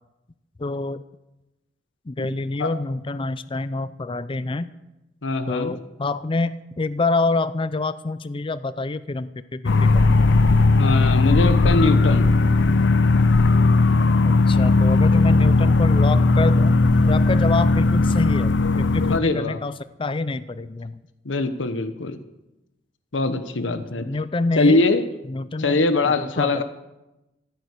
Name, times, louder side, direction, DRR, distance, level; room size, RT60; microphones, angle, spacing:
voice 1, 0.6-1.0 2.1-4.7 5.5-10.4 14.2-16.8 17.1-21.0 23.6-24.8 25.3-26.6, left 3 dB, 30° left, 14 dB, 0.5 m, -27 dB
voice 2, 5.2-5.7 10.8-12.3 19.1-19.6 21.2-22.2 23.1-24.1 24.6-25.0 25.6-26.6, left 3 dB, 90° left, 10 dB, 1.0 m, -22 dB
sound 1, 9.6-19.2, left 3 dB, 70° left, 0.6 m, -17 dB
15.5 x 9.1 x 8.3 m, 0.97 s
head